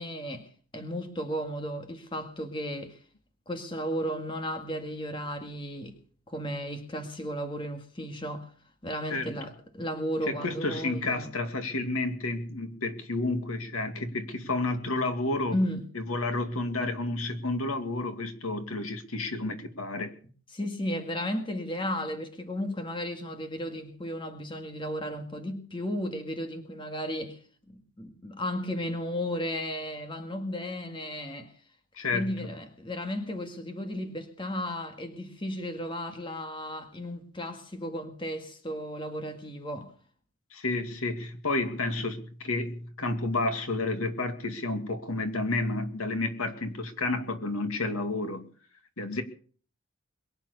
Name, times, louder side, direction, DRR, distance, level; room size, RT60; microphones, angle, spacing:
voice 1, 0.0-3.0 3.5-6.0 6.3-8.5 8.8-11.3 15.5-15.8 20.5-27.4 27.7-31.5 32.1-39.9, equal, 25° left, 1.9 m, -34 dB
voice 2, 10.3-15.5 15.9-20.1 31.9-32.5 40.5-48.5 49.0-49.2, left 2 dB, 80° left, 2.4 m, -31 dB
22.5 x 9.2 x 6.9 m
head